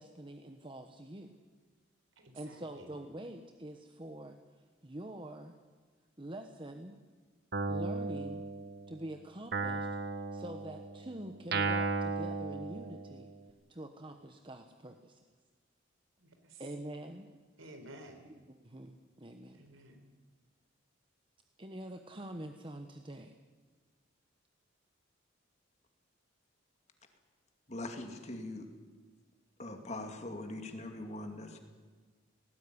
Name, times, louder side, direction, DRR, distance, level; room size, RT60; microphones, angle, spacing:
voice 1, 0.0-1.4 2.3-5.6 6.2-7.0 7.7-8.4 8.9-9.9 10.3-13.3 13.7-15.2 16.6-17.3 18.5-19.7 21.6-23.3, right 1 dB, 25° right, 5 dB, 1.2 m, -45 dB
voice 2, 2.2-2.9 16.2-16.7 17.6-18.3 19.5-20.0, right 1 dB, 80° right, 6 dB, 4.3 m, -53 dB
Guitar, 7.5-9.0 9.5-13.4, right 4 dB, 55° right, 1.4 m, -36 dB
voice 3, 27.7-28.7 29.6-31.6, left 2 dB, 35° left, 5 dB, 2.6 m, -42 dB
19.5 x 18.0 x 9.9 m, 1.4 s
head